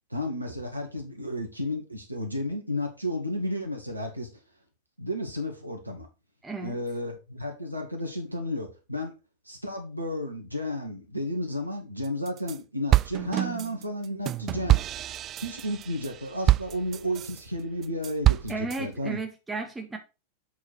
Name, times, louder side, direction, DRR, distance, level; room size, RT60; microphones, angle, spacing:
voice 1, 0.1-4.3 5.0-6.1 6.6-9.1 9.5-14.8 15.4-19.2, left 1 dB, 85° right, 2.0 m, -32 dB
voice 2, 6.4-6.8 18.5-20.0, right 3 dB, 10° right, 1.9 m, -34 dB
sound 1, 12.0-12.6 12.9-17.4 17.8-18.8, right 13 dB, 30° right, 0.3 m, -26 dB
8.2 x 4.7 x 4.8 m
figure-of-eight pair, 90°, 0 cm